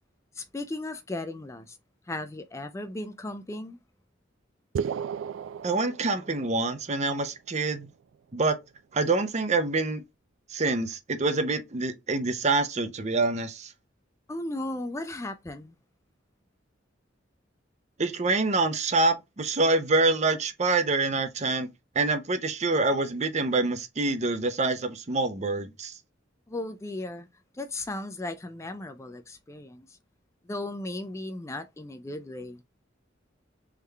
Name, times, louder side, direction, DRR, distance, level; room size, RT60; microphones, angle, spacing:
voice 1, 0.3-1.8 2.1-3.8 14.3-15.7 26.5-27.3 27.5-30.0 30.4-32.6, left 2 dB, 15° left, 0.4 m, -36 dB
sound 1, 4.7-6.7, right 7 dB, 85° right, 0.3 m, -34 dB
voice 2, 5.6-7.9 8.3-8.6 8.9-10.0 10.5-13.7 18.0-21.7 21.9-25.9, right 3 dB, 35° right, 0.6 m, -26 dB
3.6 x 3.4 x 3.2 m
head